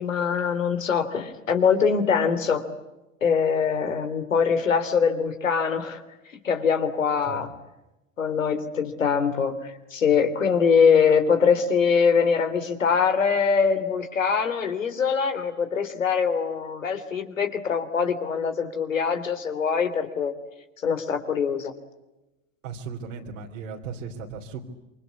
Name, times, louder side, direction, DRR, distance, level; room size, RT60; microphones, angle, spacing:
voice 1, 0.0-2.6 3.2-6.0 6.4-7.5 8.2-20.3 20.8-21.7, left 6 dB, 85° left, 8 dB, 3.4 m, -23 dB
voice 2, 22.6-24.6, right 5 dB, 75° right, -2 dB, 3.7 m, -36 dB
28.0 x 25.0 x 8.5 m, 0.99 s
hypercardioid pair, 85°, 38 cm